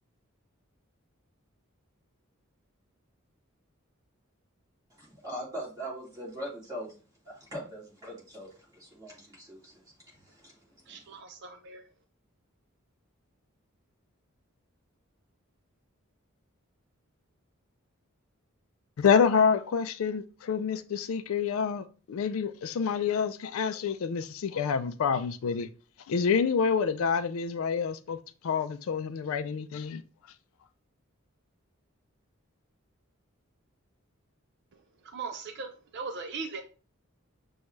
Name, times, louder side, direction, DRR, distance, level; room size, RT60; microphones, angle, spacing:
voice 1, 5.0-6.9 7.3-9.8 10.1-10.6 10.9-11.0, equal, 15° right, 2.1 m, -41 dB
voice 2, 10.9-11.8 35.1-36.6, right 4 dB, 55° right, 0.5 m, -39 dB
voice 3, 19.0-25.7 26.1-28.2 28.4-30.0, left 6 dB, 75° left, 0.4 m, -27 dB
6.4 x 2.3 x 3.1 m
head